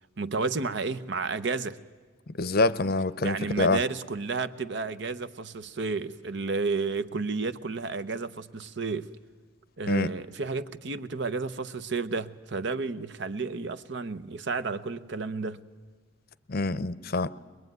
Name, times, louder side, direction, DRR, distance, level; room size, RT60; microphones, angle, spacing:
voice 1, 0.2-1.8 3.2-9.1 9.8-15.6, right 4 dB, 60° right, 0.8 m, -31 dB
voice 2, 2.3-3.8 9.9-10.1 16.5-17.3, left 3 dB, 50° left, 0.6 m, -26 dB
22.0 x 21.5 x 9.4 m
head